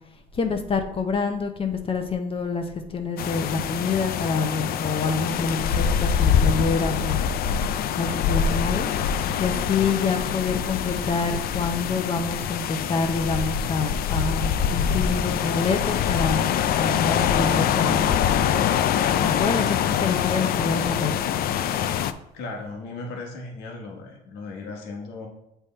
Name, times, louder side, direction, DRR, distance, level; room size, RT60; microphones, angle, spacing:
voice 1, 0.3-7.2 7.9-8.9 9.4-16.5 16.8-18.0 19.2-21.2, left 4 dB, 35° left, 5 dB, 0.8 m, -27 dB
sound 1, 3.2-22.1, left 8 dB, 65° left, 0.4 m, -24 dB
voice 2, 22.3-25.3, left 3 dB, 85° left, 1 dB, 1.4 m, -36 dB
7.6 x 3.4 x 4.4 m, 0.89 s
cardioid pair, 110°, 17 cm